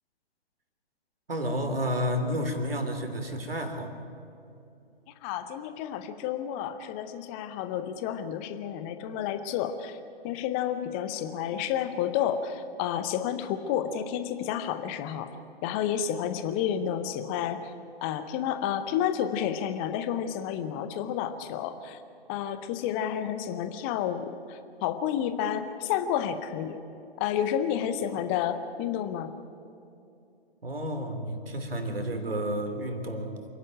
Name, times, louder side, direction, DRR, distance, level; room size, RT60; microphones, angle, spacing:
voice 1, 1.3-4.0 30.6-33.5, equal, 65° right, 6 dB, 3.2 m, -31 dB
voice 2, 5.2-10.0 10.2-17.7 18.0-22.0 22.3-26.8 27.2-29.3, left 9 dB, 10° left, 10 dB, 0.6 m, -30 dB
27.5 x 11.0 x 9.0 m, 2.7 s
figure-of-eight pair, 130°, 31 cm